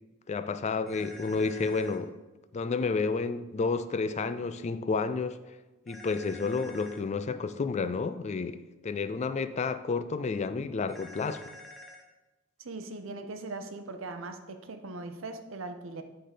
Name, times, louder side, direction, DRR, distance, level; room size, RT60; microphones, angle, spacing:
voice 1, 0.3-2.1 2.5-5.4 5.9-8.6 8.8-11.4, left 4 dB, 35° left, 12 dB, 0.3 m, -30 dB
sound 1, 0.9-2.0 5.9-7.0 10.9-12.0, left 1 dB, ahead, 0.9 m, -48 dB
voice 2, 12.6-16.0, right 3 dB, 75° right, 7 dB, 0.7 m, -40 dB
8.7 x 3.8 x 5.0 m, 1.1 s
head